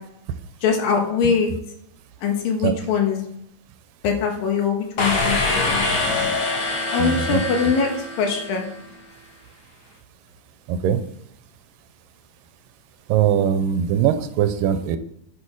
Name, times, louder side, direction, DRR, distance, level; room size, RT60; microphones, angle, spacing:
voice 1, 0.6-1.5 2.2-3.2 4.0-5.8 6.9-7.9 8.2-8.7, left 6 dB, 85° left, 3 dB, 3.4 m, -22 dB
sound 1, 5.0-8.7, left 2 dB, 45° left, 1.8 m, -24 dB
voice 2, 7.0-7.4 10.7-11.0 13.1-15.0, right 9 dB, 85° right, 10 dB, 2.3 m, -21 dB
11.5 x 6.4 x 4.7 m, 0.75 s
omnidirectional pair, 4.0 m